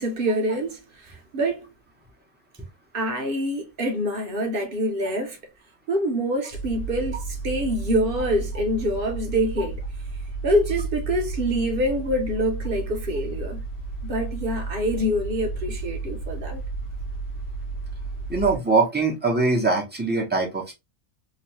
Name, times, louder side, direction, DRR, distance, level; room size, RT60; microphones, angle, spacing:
voice 1, 0.0-1.7 2.9-5.4 5.9-9.8 10.4-13.6 14.0-16.6, equal, 50° right, 0.7 m, -26 dB
sound 1, 6.5-18.6, right 3 dB, 65° left, 1.0 m, -32 dB
voice 2, 18.3-20.7, right 3 dB, 15° right, 0.4 m, -22 dB
3.0 x 2.1 x 2.9 m
omnidirectional pair, 1.6 m